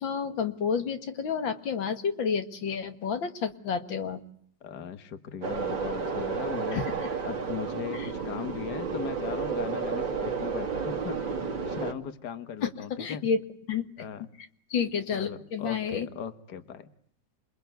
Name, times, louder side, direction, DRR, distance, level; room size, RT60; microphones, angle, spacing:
voice 1, 0.0-4.2 6.7-7.1 13.0-13.4 13.7-13.8 14.7-16.1, left 6 dB, 85° left, 7 dB, 2.5 m, -30 dB
voice 2, 4.6-6.8 7.2-11.2 11.6-13.2 14.0-14.3 15.1-16.9, left 8 dB, 60° left, 9 dB, 1.9 m, -38 dB
sound 1, 5.4-11.9, right 5 dB, 85° right, 3.2 m, -32 dB
28.0 x 21.0 x 9.3 m, 0.65 s
omnidirectional pair, 2.0 m